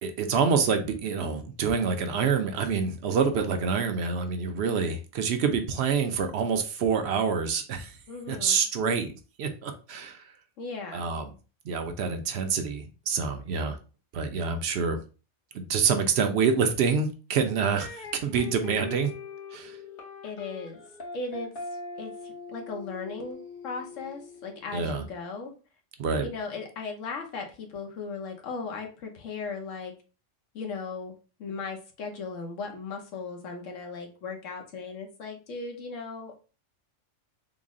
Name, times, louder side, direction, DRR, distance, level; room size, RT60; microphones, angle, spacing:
voice 1, 0.0-8.0 8.3-9.1 9.4-10.2 10.9-11.3 11.6-13.8 14.1-15.0 15.5-19.1 19.5-19.8 24.7-25.0 26.0-26.3, right 6 dB, 65° right, 7 dB, 0.8 m, -27 dB
voice 2, 8.1-8.6 10.6-11.1 20.2-20.8 21.1-21.5 22.0-25.5 26.2-29.9 30.5-31.1 31.4-36.3, left 4 dB, 80° left, 2 dB, 1.2 m, -37 dB
sound 1, 17.8-24.9, left 4 dB, 50° left, 1.0 m, -41 dB
3.9 x 2.0 x 3.6 m, 0.34 s
omnidirectional pair, 1.3 m